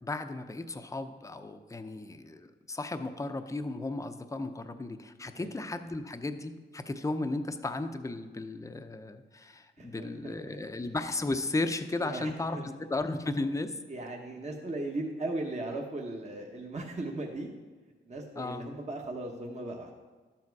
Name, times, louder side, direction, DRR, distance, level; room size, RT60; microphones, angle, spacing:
voice 1, 0.0-13.7 18.4-18.6, left 2 dB, 15° left, 8 dB, 0.6 m, -35 dB
voice 2, 9.8-10.6 12.0-12.7 13.9-17.5 18.1-19.9, right 2 dB, 35° right, 0 dB, 1.1 m, -37 dB
12.0 x 7.5 x 4.7 m, 1.3 s
cardioid pair, 90°, 20 cm